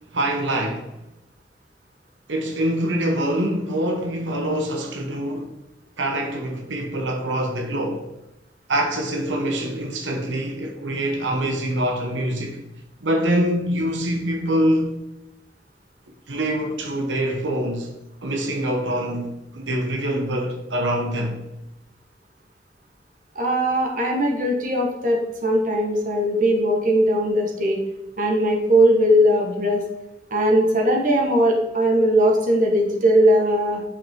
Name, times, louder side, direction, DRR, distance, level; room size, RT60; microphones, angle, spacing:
voice 1, 0.1-0.9 2.3-5.5 6.0-8.0 8.7-12.6 13.0-15.0 16.3-17.9 18.2-21.4, right 1 dB, 90° right, 1.0 m, -24 dB
voice 2, 23.3-27.8 28.2-29.8 30.3-33.8, equal, 45° right, 1.4 m, -19 dB
8.4 x 5.4 x 3.7 m
head